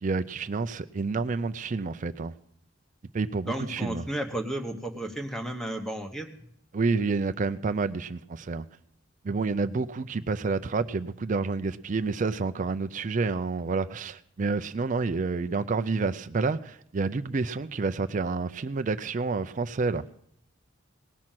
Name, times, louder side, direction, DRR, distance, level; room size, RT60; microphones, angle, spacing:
voice 1, 0.0-2.3 3.1-4.1 6.7-8.7 9.2-20.0, right 4 dB, 40° right, 0.4 m, -29 dB
voice 2, 3.5-6.3, right 1 dB, 5° left, 1.1 m, -33 dB
18.0 x 6.1 x 7.4 m
head